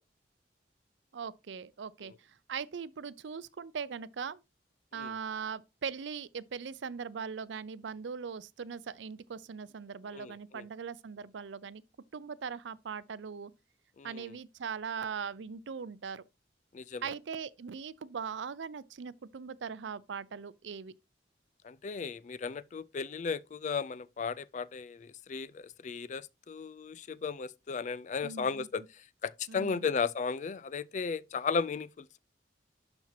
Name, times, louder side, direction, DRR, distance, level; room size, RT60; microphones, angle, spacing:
voice 1, 1.1-4.4 4.9-11.8 12.1-13.5 14.0-16.2 17.0-20.9 28.2-28.9 29.5-29.9, right 6 dB, 80° right, 0.5 m, -40 dB
voice 2, 10.1-10.6 14.0-14.3 16.7-17.0 21.6-32.2, left 5 dB, 40° left, 0.3 m, -35 dB
11.5 x 4.4 x 2.7 m
head